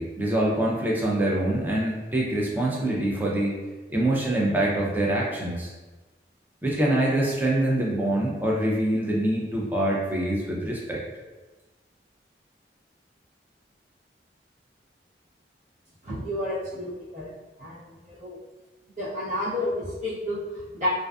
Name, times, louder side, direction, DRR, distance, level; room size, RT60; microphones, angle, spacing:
voice 1, 0.0-3.6 3.9-5.7 6.6-11.0, right 1 dB, 10° right, -4 dB, 0.4 m, -25 dB
voice 2, 16.0-17.3 17.6-17.8 18.1-18.4 19.0-20.9, left 1 dB, 45° right, -11 dB, 0.7 m, -30 dB
2.4 x 2.3 x 2.2 m, 1.2 s
head